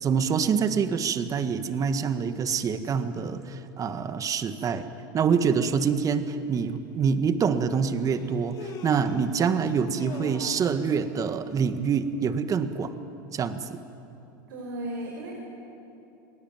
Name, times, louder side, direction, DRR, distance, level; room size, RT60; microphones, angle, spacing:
voice 1, 0.0-4.9 5.1-12.9 13.3-13.8, right 6 dB, 30° right, 10 dB, 1.7 m, -26 dB
Human voice, 6.8-6.9 8.1-9.3 9.8-10.8, left 4 dB, 35° left, 4.0 m, -42 dB
voice 2, 14.5-15.3, right 1 dB, 85° right, -1 dB, 5.3 m, -35 dB
29.0 x 20.0 x 9.3 m, 2.8 s
hypercardioid pair, 105°, 11 cm